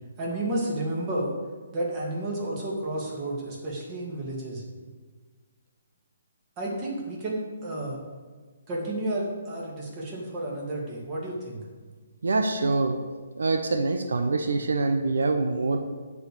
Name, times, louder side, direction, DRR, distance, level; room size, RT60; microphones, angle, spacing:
voice 1, 0.2-1.3 1.7-4.6 6.6-8.0 8.7-11.6, right 1 dB, 25° right, -3 dB, 2.5 m, -31 dB
voice 2, 12.2-13.0 13.3-15.9, right 3 dB, 85° right, 7 dB, 0.9 m, -25 dB
9.9 x 4.8 x 7.9 m, 1.4 s
hypercardioid pair, 160°, 0 cm